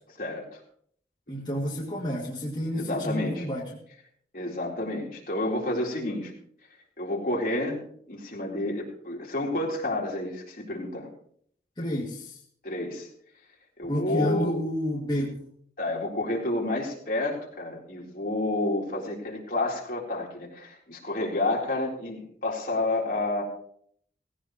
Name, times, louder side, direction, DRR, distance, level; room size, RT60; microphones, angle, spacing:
voice 1, 0.2-0.6 2.7-3.4 4.3-6.3 7.0-7.8 8.1-11.1 12.6-13.1 13.8-14.6 15.8-23.4, left 2 dB, 50° left, -2 dB, 4.0 m, -30 dB
voice 2, 1.3-3.7 11.8-12.4 13.9-15.4, equal, 25° left, -5 dB, 2.5 m, -30 dB
18.0 x 17.0 x 3.1 m, 0.63 s
head